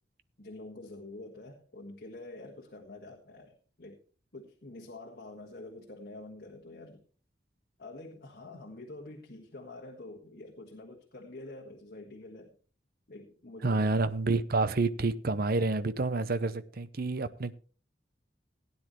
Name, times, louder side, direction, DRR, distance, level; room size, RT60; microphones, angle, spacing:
voice 1, 0.4-4.0 4.3-7.0 7.8-12.5 13.1-13.9, left 2 dB, 55° left, 1.6 m, -47 dB
voice 2, 13.6-17.5, right 3 dB, 55° right, 0.8 m, -29 dB
17.0 x 9.8 x 3.1 m
head